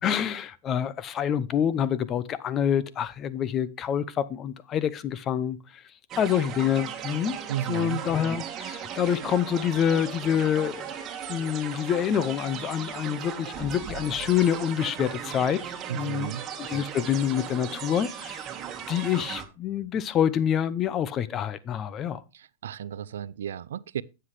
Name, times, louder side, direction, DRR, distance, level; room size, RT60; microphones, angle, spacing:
voice 1, 0.0-5.8 6.2-7.4 7.7-16.3 16.6-18.4 18.9-22.2, left 9 dB, 30° left, 0.7 m, -27 dB
sound 1, 6.1-19.4, right 8 dB, 30° right, 1.6 m, -37 dB
voice 2, 7.5-8.0 15.9-16.5 22.3-24.0, right 10 dB, 85° right, 0.4 m, -34 dB
9.5 x 7.8 x 3.3 m
hypercardioid pair, 120°, 0 cm